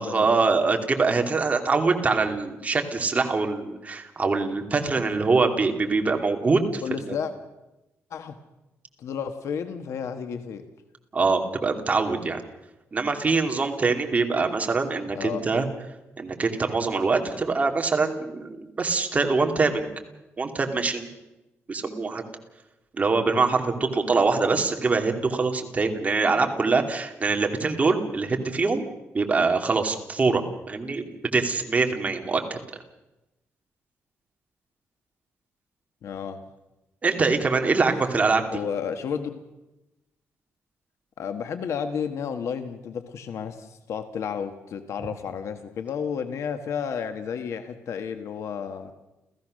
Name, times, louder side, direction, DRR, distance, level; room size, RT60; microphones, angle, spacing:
voice 1, 0.0-7.2 11.1-12.4 12.9-15.7 16.2-19.9 20.4-21.1 21.7-22.2 23.0-28.8 29.1-30.4 30.7-32.6 37.0-38.4, right 4 dB, 30° right, 4 dB, 2.5 m, -24 dB
voice 2, 6.8-7.3 8.1-8.4 9.0-10.6 15.1-15.5 24.2-24.6 36.0-36.4 38.5-39.4 41.2-48.9, left 7 dB, 75° left, 8 dB, 1.5 m, -32 dB
29.5 x 15.5 x 6.5 m, 0.98 s
cardioid pair, 135°, 5 cm